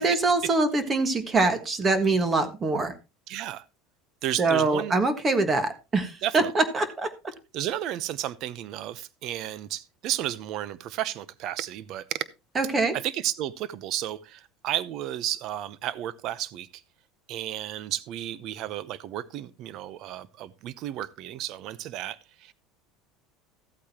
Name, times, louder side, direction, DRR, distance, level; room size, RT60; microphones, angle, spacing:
voice 1, 0.0-2.9 4.4-7.1 12.5-12.9, right 3 dB, 20° right, 1.5 m, -24 dB
voice 2, 3.3-3.6 4.2-4.9 6.2-6.5 7.5-12.2 12.9-16.7 17.3-22.5, right 12 dB, 50° right, 0.8 m, -33 dB
14.5 x 8.5 x 2.9 m
supercardioid pair, 135°, 0 cm